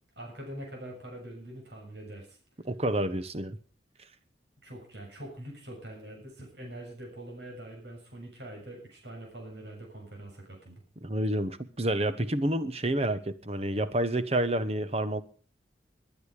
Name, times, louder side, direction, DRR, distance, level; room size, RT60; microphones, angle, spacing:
voice 1, 0.2-2.4 4.6-10.8, right 1 dB, 75° right, 7.2 m, -44 dB
voice 2, 2.6-3.6 11.0-15.2, right 1 dB, 35° right, 1.2 m, -29 dB
21.5 x 10.5 x 5.1 m
head